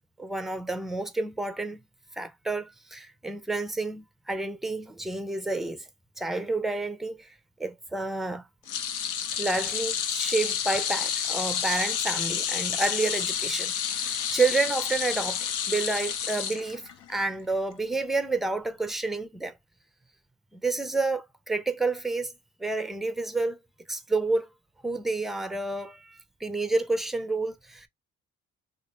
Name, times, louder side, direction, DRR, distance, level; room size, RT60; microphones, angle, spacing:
voice 1, 0.2-1.8 2.2-5.9 6.2-7.3 7.6-8.4 9.4-15.4 15.7-19.5 20.5-22.3 22.6-23.6 23.9-24.5 24.8-27.9, right 3 dB, ahead, 0.5 m, -29 dB
sound 1, 8.7-17.1 17.5-17.7 18.9-19.0, left 8 dB, 85° left, 0.7 m, -30 dB
3.1 x 2.4 x 3.0 m
cardioid pair, 90°, 30 cm